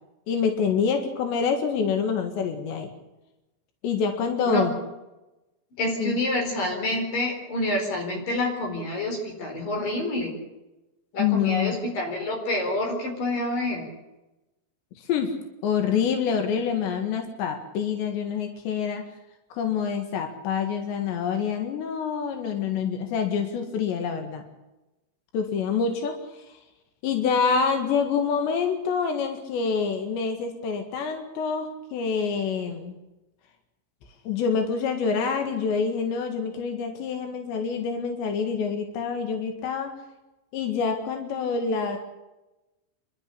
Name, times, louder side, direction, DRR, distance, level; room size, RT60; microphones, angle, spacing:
voice 1, 0.3-2.9 3.8-4.8 6.0-6.2 11.2-11.8 14.9-15.3 15.6-19.1 19.5-24.4 25.3-26.5 27.0-33.0 34.3-39.9 40.5-42.0, left 6 dB, 90° left, 5 dB, 4.1 m, -26 dB
voice 2, 5.8-10.3 11.1-13.8, left 1 dB, 55° left, 2 dB, 6.1 m, -27 dB
27.5 x 12.0 x 10.0 m, 1.0 s
omnidirectional pair, 4.9 m